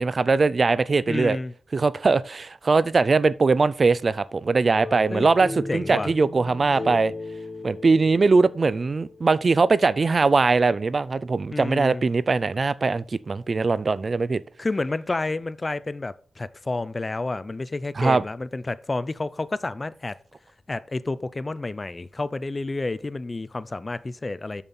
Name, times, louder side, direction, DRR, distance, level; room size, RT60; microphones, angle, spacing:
voice 1, 0.0-1.4 1.7-7.1 7.6-14.4 18.0-18.2, right 4 dB, 45° right, 0.3 m, -21 dB
voice 2, 1.1-1.5 5.1-5.3 5.7-6.1 11.5-12.1 14.6-20.2 20.7-24.6, left 2 dB, 30° left, 0.4 m, -30 dB
sound 1, 4.7-9.6, left 2 dB, 15° left, 4.4 m, -36 dB
7.0 x 7.0 x 4.2 m
wide cardioid pair, 100°, 0 cm